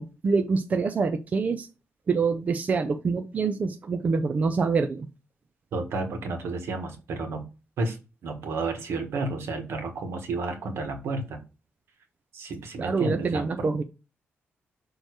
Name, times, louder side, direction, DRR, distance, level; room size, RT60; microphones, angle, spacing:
voice 1, 0.0-1.7 2.1-5.1 12.8-13.8, right 4 dB, 35° right, 7 dB, 0.5 m, -26 dB
voice 2, 5.7-7.4 7.8-8.0 8.2-11.4 12.3-13.4, right 3 dB, 75° right, 5 dB, 1.5 m, -31 dB
6.7 x 3.1 x 4.7 m, 0.31 s
wide cardioid pair, 145°, 4 cm